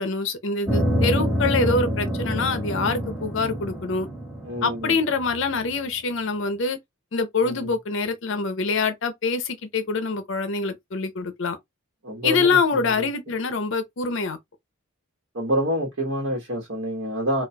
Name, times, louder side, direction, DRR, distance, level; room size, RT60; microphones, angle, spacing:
voice 1, 0.0-4.1 4.6-6.8 7.1-11.6 12.2-14.4, left 4 dB, 65° left, 0.6 m, -25 dB
sound 1, 0.7-5.5, equal, ahead, 0.9 m, -26 dB
voice 2, 4.4-4.9 7.4-7.6 12.0-12.8 15.3-17.4, equal, 70° right, 1.1 m, -27 dB
4.2 x 2.3 x 2.2 m
head